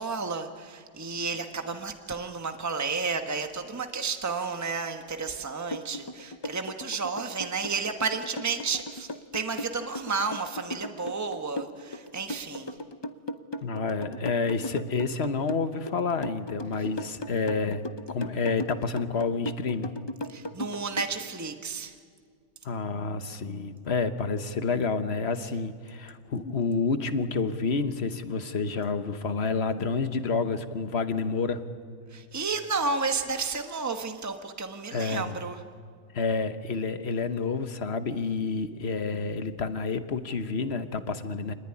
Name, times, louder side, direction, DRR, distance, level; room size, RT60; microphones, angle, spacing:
voice 1, 0.0-9.1 9.3-12.7 20.3-21.9 32.1-35.6, right 4 dB, 15° right, 6 dB, 1.2 m, -32 dB
sound 1, 5.7-21.1, left 1 dB, 25° left, 0.7 m, -37 dB
voice 2, 13.6-19.9 22.6-31.6 34.9-35.4 36.1-41.5, left 4 dB, 55° left, 10 dB, 1.4 m, -29 dB
27.0 x 20.0 x 9.9 m, 2.1 s
omnidirectional pair, 1.4 m